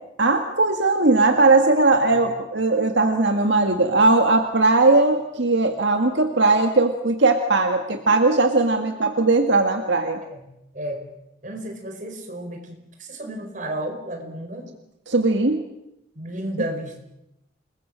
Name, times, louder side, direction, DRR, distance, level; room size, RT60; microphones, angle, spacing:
voice 1, 0.2-10.2 15.1-15.6, right 3 dB, 75° right, 4 dB, 1.9 m, -19 dB
voice 2, 10.3-11.1 11.4-14.7 16.1-17.0, right 1 dB, 45° right, 4 dB, 4.9 m, -33 dB
28.0 x 21.0 x 7.6 m, 0.85 s
head